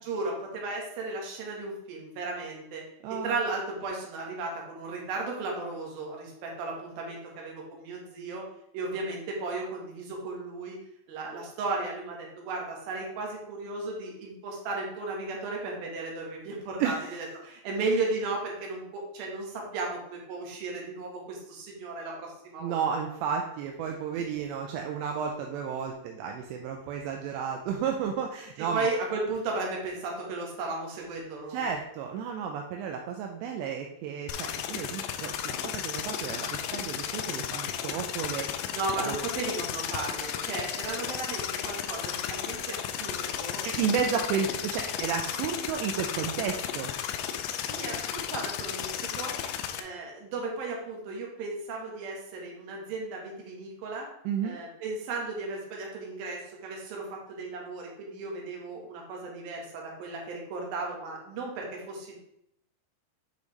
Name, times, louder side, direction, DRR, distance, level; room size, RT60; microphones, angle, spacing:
voice 1, 0.0-2.8 3.1-8.5 8.7-10.8 11.1-22.9 28.6-31.7 38.7-43.7 44.1-44.2 47.5-49.4 49.7-54.1 54.4-62.2, right 3 dB, 65° right, -1 dB, 2.9 m, -35 dB
voice 2, 3.0-3.4 16.8-17.1 22.6-28.9 31.5-38.5 39.0-39.2 43.6-46.9 54.3-54.6, right 7 dB, 85° right, 2 dB, 2.7 m, -32 dB
sound 1, 34.3-49.8, left 9 dB, 85° left, 2.7 m, -34 dB
8.3 x 5.2 x 3.2 m, 0.78 s
omnidirectional pair, 5.2 m